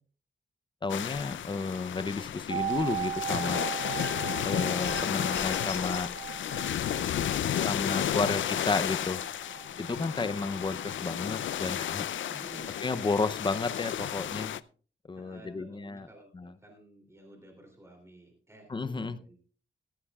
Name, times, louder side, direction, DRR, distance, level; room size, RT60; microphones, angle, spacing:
voice 1, 0.8-3.6 4.5-6.1 7.6-9.2 9.8-12.1 12.8-14.5 15.1-16.1 16.3-16.5 18.7-19.2, left 3 dB, 25° left, 13 dB, 0.6 m, -32 dB
sound 1, 0.9-14.6, left 10 dB, 80° left, 0.5 m, -32 dB
sound 2, 2.5-12.2 12.5-12.6, right 11 dB, 50° right, 3.8 m, -39 dB
voice 2, 3.6-4.0 7.4-8.3 9.6-10.0 12.3-13.1 15.1-19.5, right 1 dB, 15° right, 2 dB, 3.0 m, -53 dB
sound 3, 4.0-4.4 4.8-6.1, left 6 dB, 60° left, 3.3 m, -41 dB
15.5 x 15.0 x 2.4 m, 0.39 s
wide cardioid pair, 160°, 20 cm